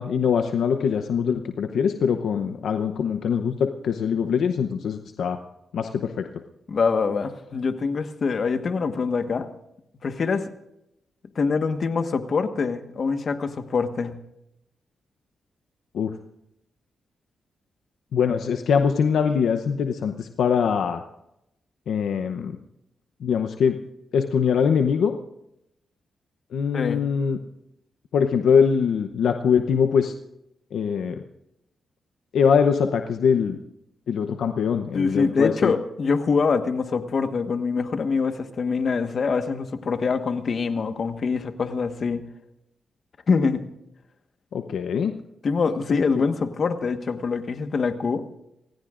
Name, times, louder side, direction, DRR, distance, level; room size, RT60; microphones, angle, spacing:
voice 1, 0.0-5.4 5.7-6.3 15.9-16.1 18.1-21.0 21.9-22.6 23.2-23.8 24.1-25.1 26.5-27.4 28.1-30.1 30.7-31.2 32.3-33.6 34.1-35.7 44.5-45.1 46.2-46.3, left 6 dB, 80° left, 7 dB, 0.8 m, -22 dB
voice 2, 6.7-9.5 10.0-10.4 11.3-14.1 26.7-27.0 34.9-42.2 43.3-43.7 45.4-48.2, left 5 dB, 60° left, 8 dB, 1.3 m, -24 dB
28.5 x 16.0 x 2.5 m, 0.83 s
cardioid pair, 65°, 0 cm